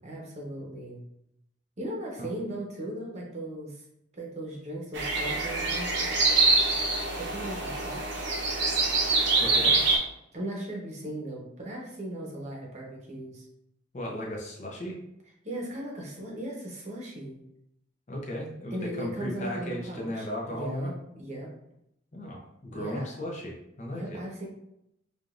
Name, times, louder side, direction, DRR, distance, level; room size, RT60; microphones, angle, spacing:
voice 1, 0.0-1.0 1.8-3.8 4.1-6.1 7.2-8.3 10.3-13.4 15.4-17.4 18.7-21.5 22.7-23.1 23.9-24.5, right 1 dB, 35° right, -2 dB, 0.9 m, -37 dB
sound 1, 4.9-10.0, right 3 dB, 65° right, 0.8 m, -25 dB
voice 2, 9.4-9.8 13.9-15.0 18.1-20.9 22.1-24.2, left 1 dB, 40° left, -1 dB, 0.7 m, -36 dB
4.9 x 2.5 x 2.5 m, 0.80 s
head